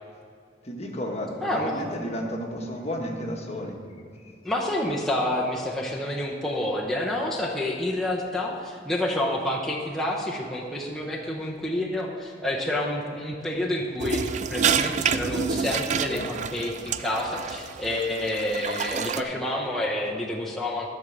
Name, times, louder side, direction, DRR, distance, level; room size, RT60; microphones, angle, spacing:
voice 1, 0.6-3.8 16.1-16.3, equal, 35° left, 1 dB, 1.4 m, -32 dB
voice 2, 1.4-1.8 4.4-20.9, left 1 dB, ahead, -4 dB, 0.9 m, -28 dB
sound 1, 14.0-19.2, right 6 dB, 40° right, 0.4 m, -28 dB
13.0 x 5.3 x 7.2 m, 2.3 s
head